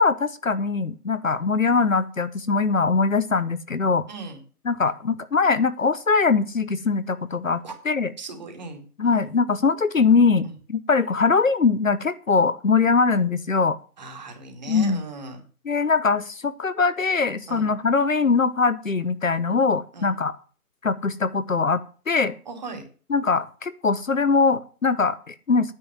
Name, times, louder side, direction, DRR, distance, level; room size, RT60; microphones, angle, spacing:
voice 1, 0.0-4.0 4.6-8.1 9.0-13.8 14.7-15.0 15.6-20.3 20.8-22.3 23.1-25.7, left 4 dB, 60° left, 14 dB, 1.0 m, -22 dB
voice 2, 4.1-4.4 7.6-7.7 8.2-8.8 14.0-15.4 17.5-17.7 19.9-20.1 22.5-22.8, right 3 dB, 30° right, 3 dB, 2.5 m, -37 dB
9.7 x 8.1 x 7.7 m, 0.40 s
figure-of-eight pair, 160°, 46 cm